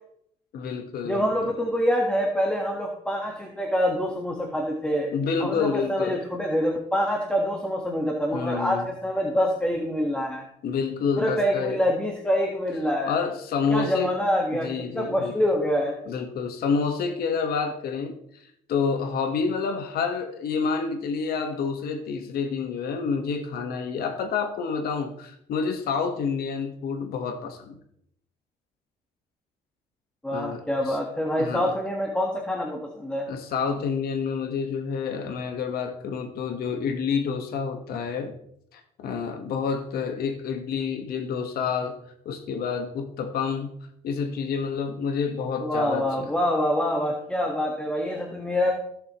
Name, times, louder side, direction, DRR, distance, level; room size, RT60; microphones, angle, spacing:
voice 1, 0.5-1.5 5.1-6.2 8.3-8.9 10.6-11.8 13.1-14.1 14.6-15.3 16.1-27.8 30.3-31.0 31.4-31.7 33.3-38.3 38.7-41.9 42.2-43.7 44.0-46.3, left 5 dB, 65° left, 5 dB, 1.4 m, -28 dB
voice 2, 1.0-5.1 5.4-10.4 11.2-13.1 13.7-14.7 14.9-15.9 30.2-33.3 45.6-48.7, equal, 5° left, 0 dB, 1.4 m, -26 dB
16.0 x 7.4 x 3.0 m, 0.73 s
cardioid pair, 110°, 17 cm